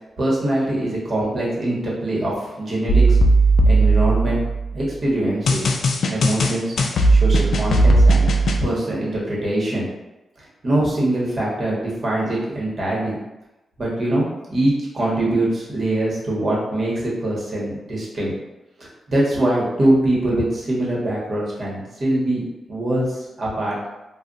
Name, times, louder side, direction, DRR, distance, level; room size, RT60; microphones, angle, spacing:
voice 1, 0.2-3.2 3.6-4.4 4.7-5.7 6.1-6.8 7.1-8.3 8.6-9.9 10.6-13.2 13.8-18.3 18.8-23.8, right 1 dB, 50° right, -4 dB, 1.1 m, -23 dB
Military Bass, 2.9-4.7 5.5-8.6, right 2 dB, 75° left, 0.3 m, -16 dB
2.4 x 2.1 x 3.8 m, 0.99 s
cardioid pair, 85°, 0 cm